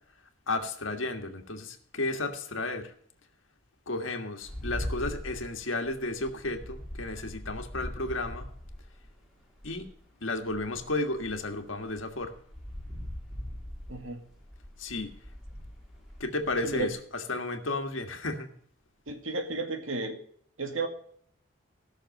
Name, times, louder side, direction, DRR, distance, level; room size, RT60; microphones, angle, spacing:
voice 1, 0.5-2.9 3.9-8.5 9.6-9.9 10.2-12.3 14.8-15.2 16.2-18.5, left 2 dB, 75° left, 5 dB, 1.7 m, -33 dB
sound 1, 4.4-9.9 10.4-16.9, equal, ahead, 2.1 m, -41 dB
voice 2, 13.9-14.2 16.6-16.9 19.1-20.2 20.6-20.9, right 3 dB, 80° right, 5 dB, 2.1 m, -33 dB
16.0 x 6.6 x 6.5 m, 0.62 s
head